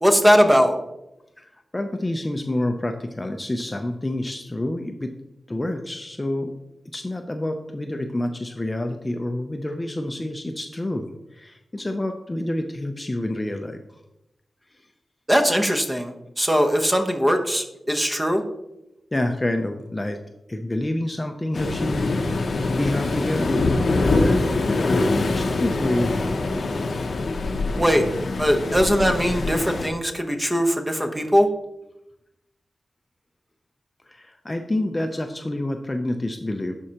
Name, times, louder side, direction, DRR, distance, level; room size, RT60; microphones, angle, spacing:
voice 1, 0.0-0.8 15.3-18.4 27.8-28.1 28.4-31.5, equal, 10° right, 4 dB, 0.9 m, -20 dB
voice 2, 1.4-5.1 5.5-6.5 6.9-13.8 19.1-20.2 20.5-22.2 22.7-26.1 34.1-36.7, left 1 dB, 20° left, 5 dB, 0.5 m, -28 dB
Waves surf, 21.5-29.9, left 3 dB, 60° left, 0.6 m, -24 dB
11.5 x 4.4 x 2.9 m, 0.90 s
wide cardioid pair, 90°, 0 cm